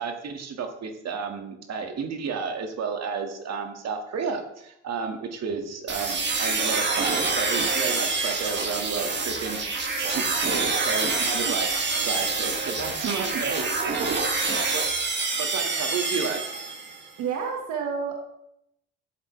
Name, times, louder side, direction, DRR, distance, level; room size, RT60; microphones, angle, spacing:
voice 1, 0.0-11.7 12.0-14.2 14.7-14.9 15.3-16.4, right 5 dB, 60° right, 4 dB, 1.8 m, -32 dB
sound 1, 5.9-17.0, right 3 dB, 40° right, 1.9 m, -26 dB
voice 2, 13.8-14.2 17.2-18.1, right 6 dB, 85° right, 1 dB, 1.6 m, -30 dB
12.5 x 7.6 x 3.2 m, 0.78 s
cardioid pair, 85°, 29 cm